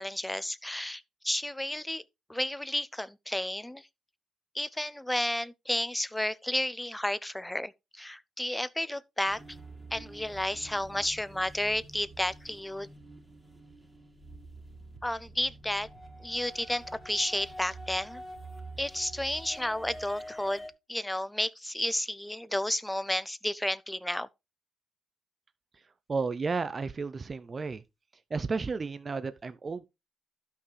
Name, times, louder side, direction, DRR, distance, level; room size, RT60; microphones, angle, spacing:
voice 1, 0.0-2.0 2.3-3.9 4.5-9.4 9.9-12.9 15.0-15.9 16.2-18.2 18.8-20.6 20.9-24.3, left 1 dB, 5° left, 0.5 m, -32 dB
sound 1, 9.3-20.7, right 1 dB, 10° right, 2.1 m, -47 dB
voice 2, 26.1-27.8 28.3-29.8, right 4 dB, 35° right, 0.6 m, -32 dB
12.0 x 5.6 x 3.3 m
cardioid pair, 90°, 0 cm